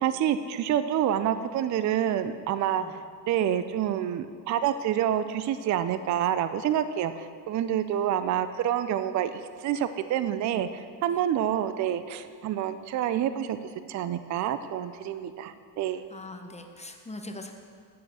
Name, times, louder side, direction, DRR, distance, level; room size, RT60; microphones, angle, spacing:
voice 1, 0.0-3.0 3.3-13.6 13.9-16.1, right 10 dB, 40° right, 12 dB, 0.5 m, -28 dB
voice 2, 16.1-17.5, left 2 dB, 15° left, 4 dB, 0.8 m, -41 dB
9.2 x 4.6 x 7.2 m, 2.1 s
supercardioid pair, 80°, 48 cm